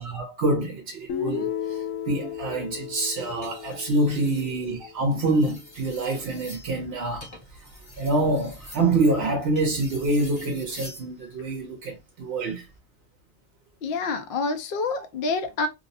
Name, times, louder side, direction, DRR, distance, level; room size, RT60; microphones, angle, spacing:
voice 1, 0.0-7.7 8.0-12.7, right 2 dB, 65° right, 0.8 m, -26 dB
Guitar, 1.1-5.1, left 7 dB, 85° left, 0.9 m, -34 dB
sound 1, 3.3-4.5 5.2-11.1 12.5-12.8, left 1 dB, 25° left, 0.9 m, -46 dB
voice 2, 13.8-15.7, left 3 dB, 60° left, 0.6 m, -27 dB
2.6 x 2.0 x 2.6 m
omnidirectional pair, 1.2 m